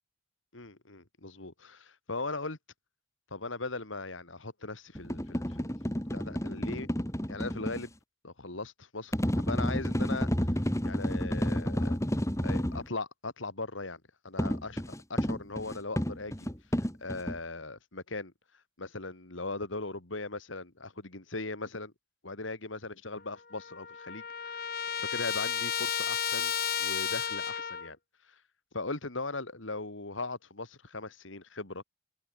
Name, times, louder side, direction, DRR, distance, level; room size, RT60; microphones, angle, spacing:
voice 1, 0.5-2.6 3.3-5.7 6.1-6.9 7.3-7.9 8.2-10.3 10.8-12.0 12.4-16.5 17.0-18.3 18.8-21.9 22.2-24.6 25.0-26.5 26.8-28.0 28.3-28.4 28.7-31.8, left 3 dB, 80° left, 2.6 m, -39 dB
sound 1, 4.9-7.8 9.1-12.9 14.4-17.4, equal, 15° left, 2.4 m, -30 dB
Trumpet, 23.2-23.3 23.5-27.9, left 8 dB, 50° left, 2.3 m, -33 dB
head